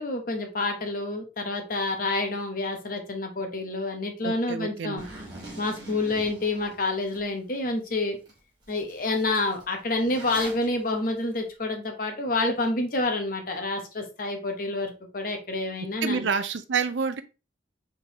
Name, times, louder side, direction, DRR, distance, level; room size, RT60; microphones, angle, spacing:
voice 1, 0.0-5.0 5.6-8.2 8.7-16.3, left 2 dB, 45° left, 4 dB, 0.9 m, -28 dB
voice 2, 4.2-5.0 16.0-17.2, right 5 dB, 70° right, 11 dB, 0.5 m, -28 dB
Zipper (clothing), 5.0-7.2 7.7-7.8 8.3-8.4 8.6-10.6, right 1 dB, 20° right, 1.6 m, -43 dB
4.5 x 3.7 x 2.9 m, 0.30 s
head